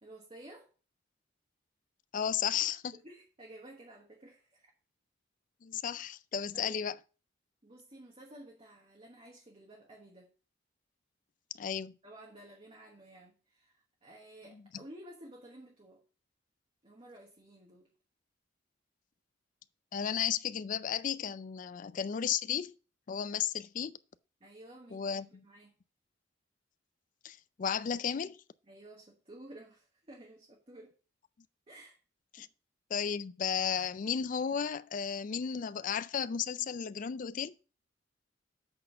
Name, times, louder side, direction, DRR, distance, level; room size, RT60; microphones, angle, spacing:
voice 1, 0.0-0.7 2.9-4.7 6.5-6.8 7.6-10.3 12.0-16.0 16.8-17.9 24.4-25.8 28.7-31.0 31.7-32.0 32.4-32.5, right 1 dB, 30° right, 1.3 m, -53 dB
voice 2, 2.1-3.0 5.6-7.0 11.6-11.9 14.5-14.8 19.9-22.8 23.1-24.0 24.9-25.4 27.2-28.4 32.3-32.5 32.9-37.5, left 8 dB, 45° left, 0.4 m, -34 dB
7.8 x 4.3 x 5.5 m
head